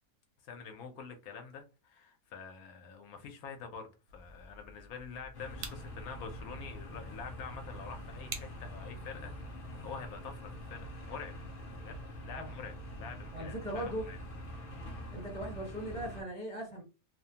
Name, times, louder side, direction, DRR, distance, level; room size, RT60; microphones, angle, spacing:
voice 1, 0.4-11.3 11.8-14.2, left 6 dB, 75° left, 1.0 m, -47 dB
sound 1, 4.1-10.8, right 4 dB, 65° right, 0.7 m, -50 dB
sound 2, 5.3-16.2, equal, 55° left, 0.6 m, -45 dB
voice 2, 13.3-14.1 15.1-16.8, right 1 dB, 5° left, 0.6 m, -39 dB
2.9 x 2.1 x 2.7 m
omnidirectional pair, 1.6 m